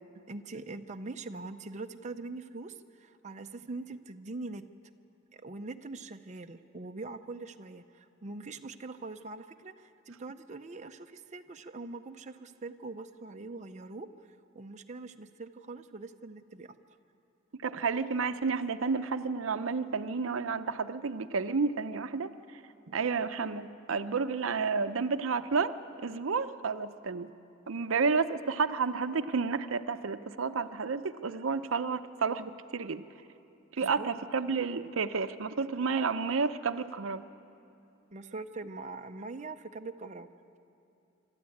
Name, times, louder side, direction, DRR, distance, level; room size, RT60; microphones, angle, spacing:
voice 1, 0.3-4.7 5.3-17.0 22.9-23.0 33.8-34.2 38.1-40.3, right 3 dB, 35° right, 6 dB, 0.6 m, -43 dB
voice 2, 17.6-22.6 22.9-25.7 26.0-27.3 27.7-33.0 33.8-37.2, right 5 dB, 75° right, 11 dB, 0.6 m, -31 dB
26.5 x 12.5 x 8.5 m, 2.8 s
head